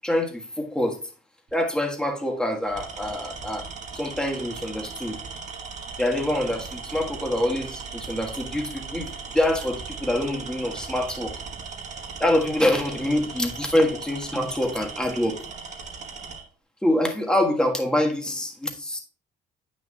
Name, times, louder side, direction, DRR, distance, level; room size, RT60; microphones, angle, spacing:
voice 1, 0.0-1.0 1.5-3.7 3.9-5.2 6.0-11.3 12.2-15.4 16.8-19.0, left 1 dB, 5° left, 1.5 m, -25 dB
Tools, 1.5-1.8 2.6-16.5, right 5 dB, 45° right, 1.3 m, -38 dB
9.0 x 6.1 x 2.3 m
cardioid pair, 110°, 17 cm